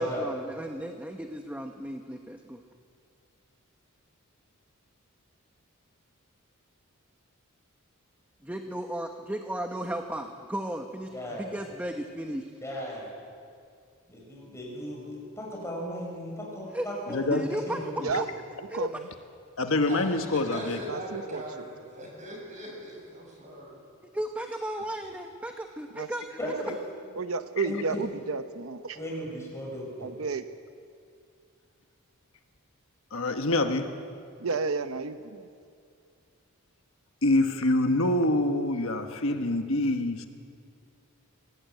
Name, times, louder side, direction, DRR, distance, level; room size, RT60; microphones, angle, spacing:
voice 1, 0.0-2.6 8.4-12.5 16.7-16.9 17.3-18.3 18.7-18.9 24.1-26.4, right 1 dB, 5° right, 1.0 m, -35 dB
voice 2, 11.1-11.4 12.6-13.1 14.1-17.2 17.5-18.1 26.4-26.5 27.6-28.0 28.9-30.1, equal, 15° left, 6.4 m, -36 dB
voice 3, 17.1-17.4 19.6-20.8 33.1-33.9 37.2-40.2, left 2 dB, 65° left, 1.4 m, -25 dB
voice 4, 18.7-19.1 20.8-21.7 25.9-26.1 26.4-26.8 27.1-29.0 30.0-30.4 34.4-35.5, right 4 dB, 70° right, 0.8 m, -32 dB
voice 5, 19.8-23.8, right 1 dB, 35° right, 7.5 m, -40 dB
22.5 x 17.0 x 9.3 m
head